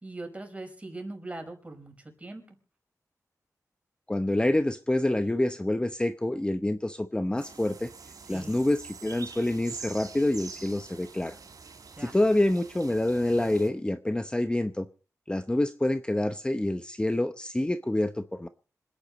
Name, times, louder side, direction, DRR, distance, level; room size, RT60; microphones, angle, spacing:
voice 1, 0.0-2.6 8.3-8.6 12.0-12.2, right 2 dB, 20° right, 4 dB, 5.1 m, -41 dB
voice 2, 4.1-7.9 8.3-11.4 12.0-14.9 15.3-18.5, left 1 dB, 15° left, 10 dB, 0.8 m, -27 dB
sound 1, 7.4-13.7, right 5 dB, 80° right, 3.4 m, -45 dB
26.5 x 9.9 x 4.0 m, 0.37 s
wide cardioid pair, 80°, 6 cm